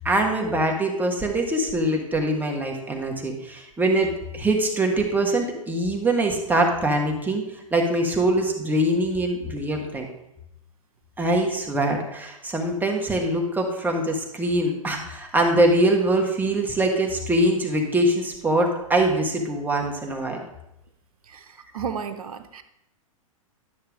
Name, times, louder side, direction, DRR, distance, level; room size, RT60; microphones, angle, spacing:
voice 1, 0.0-7.4 7.7-10.1 11.2-20.4, right 1 dB, 10° right, 1 dB, 1.4 m, -23 dB
voice 2, 21.3-22.6, right 7 dB, 85° right, 8 dB, 0.8 m, -33 dB
11.0 x 6.6 x 3.6 m, 0.86 s
hypercardioid pair, 115°, 18 cm